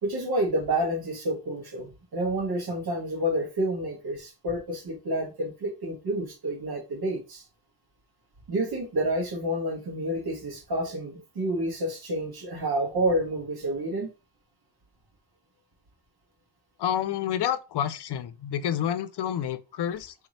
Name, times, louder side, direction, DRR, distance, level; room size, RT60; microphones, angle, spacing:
voice 1, 0.0-7.4 8.5-14.1, right 1 dB, 60° right, 1.8 m, -29 dB
voice 2, 16.8-20.1, left 10 dB, 70° left, 0.6 m, -29 dB
3.4 x 3.2 x 4.1 m
cardioid pair, 50°, 41 cm